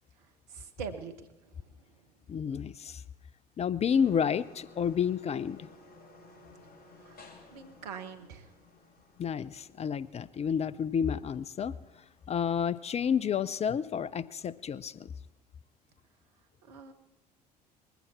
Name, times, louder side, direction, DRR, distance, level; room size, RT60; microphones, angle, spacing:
voice 1, 0.5-1.1 7.0-7.2 7.5-8.5 16.6-16.9, right 6 dB, 70° right, 8 dB, 1.3 m, -42 dB
voice 2, 2.3-3.0 3.6-5.7 9.2-11.7 12.3-15.1, left 7 dB, 30° left, 17 dB, 0.6 m, -30 dB
sound 1, 3.9-15.3, left 2 dB, 45° left, 2.6 m, -57 dB
21.0 x 15.0 x 4.3 m, 1.1 s
figure-of-eight pair, 60°, 21 cm